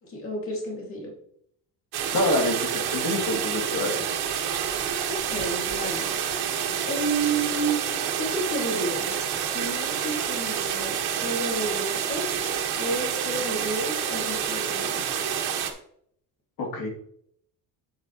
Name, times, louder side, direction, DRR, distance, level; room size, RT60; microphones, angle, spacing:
voice 1, 0.0-1.1 5.1-6.1 6.9-7.8 8.2-9.3 9.5-12.5 12.8-15.0, right 2 dB, 35° left, -1 dB, 2.3 m, -31 dB
sound 1, 1.9-15.7, right 8 dB, 85° right, 1.6 m, -28 dB
voice 2, 2.1-4.1 16.6-16.9, left 1 dB, 75° left, 0 dB, 2.7 m, -27 dB
8.6 x 8.0 x 3.0 m, 0.66 s
cardioid pair, 170°, 37 cm